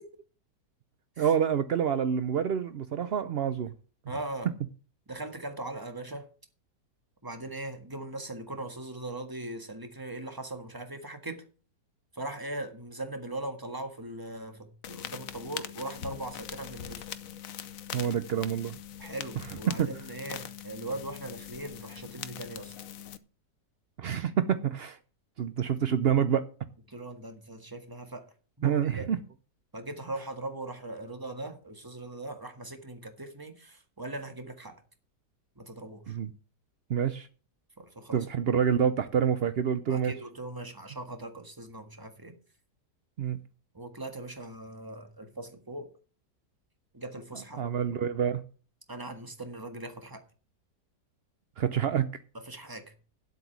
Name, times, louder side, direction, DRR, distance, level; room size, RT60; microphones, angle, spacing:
voice 1, 1.2-3.7 17.9-18.8 19.4-19.9 24.0-25.0 25.4-26.5 28.6-29.2 36.1-36.3 36.9-37.3 38.1-40.1 43.2-43.4 47.3-48.4 51.6-52.1, right 8 dB, 70° right, 0.6 m, -27 dB
voice 2, 4.1-4.5 5.1-6.3 7.2-11.4 12.1-17.0 19.0-22.7 26.9-28.3 28.6-29.1 29.7-34.8 35.6-36.2 37.8-38.3 39.9-42.4 43.7-45.9 46.9-47.6 48.9-50.2 52.4-52.9, right 2 dB, 15° right, 1.5 m, -40 dB
sound 1, 14.8-23.2, left 10 dB, 60° left, 1.1 m, -42 dB
10.0 x 8.0 x 6.0 m
omnidirectional pair, 1.9 m